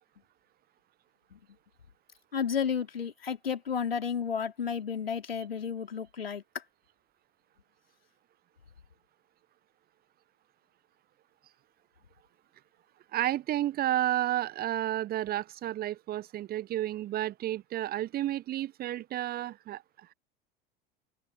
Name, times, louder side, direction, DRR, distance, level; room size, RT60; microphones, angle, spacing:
voice 1, 2.3-6.6, left 7 dB, 80° left, 3.9 m, -32 dB
voice 2, 13.1-20.1, right 13 dB, 30° right, 0.9 m, -31 dB
open air
figure-of-eight pair, 75°, 29 cm